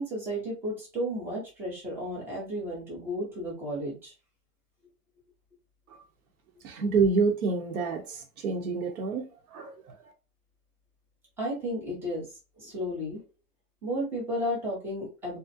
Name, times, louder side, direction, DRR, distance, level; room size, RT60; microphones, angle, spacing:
voice 1, 0.0-4.1 11.4-12.3 12.6-13.2 13.8-15.4, equal, 5° right, 0.4 m, -33 dB
voice 2, 6.6-10.1, right 4 dB, 65° right, 0.7 m, -28 dB
2.4 x 2.1 x 2.6 m
hypercardioid pair, 120°, 47 cm